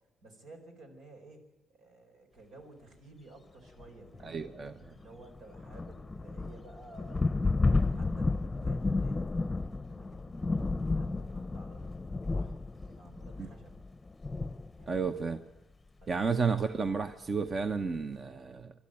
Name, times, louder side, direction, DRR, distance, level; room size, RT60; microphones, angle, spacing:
voice 1, 0.2-1.4 1.7-4.5 4.9-7.2 7.5-9.4 9.8-13.9 14.8-15.3 16.0-16.4, right 2 dB, 80° right, 4 dB, 4.8 m, -54 dB
sound 1, 3.8-3.9 4.1-15.2 16.2-16.3 16.6-16.9, left 3 dB, 20° left, 0.7 m, -32 dB
voice 2, 4.2-4.9 13.4-13.5 14.9-15.4 16.1-18.7, right 5 dB, 40° right, 8 dB, 0.9 m, -32 dB
25.5 x 12.0 x 9.2 m, 1.0 s
cardioid pair, 90°, 0 cm